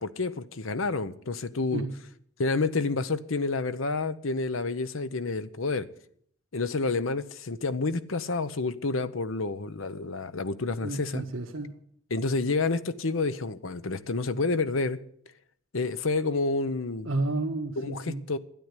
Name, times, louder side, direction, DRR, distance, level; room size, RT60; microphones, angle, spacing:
voice 1, 0.0-1.8 2.4-5.9 6.5-11.2 12.1-15.0 15.7-17.1 17.8-18.4, left 3 dB, 90° left, 0.9 m, -29 dB
voice 2, 10.8-11.8 17.0-18.2, right 2 dB, 85° right, 1.6 m, -31 dB
12.5 x 10.5 x 9.8 m
head